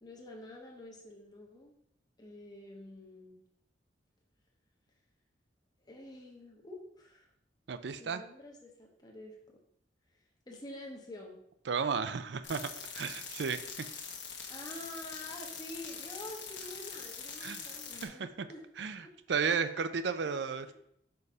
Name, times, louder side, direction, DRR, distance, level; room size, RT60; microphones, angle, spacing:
voice 1, 0.0-1.7 2.2-3.4 5.8-7.3 7.9-9.6 10.5-11.4 14.5-18.6 19.0-19.1 20.2-20.4 20.7-20.8, left 1 dB, 20° left, 0 dB, 0.9 m, -48 dB
voice 2, 7.7-8.2 11.7-12.6 12.9-13.9 17.4-17.6 18.0-18.5 18.8-20.8, right 5 dB, 70° right, 12 dB, 0.5 m, -34 dB
sound 1, 12.4-18.1, left 6 dB, 85° left, 1.1 m, -43 dB
4.8 x 4.6 x 5.5 m, 0.73 s
head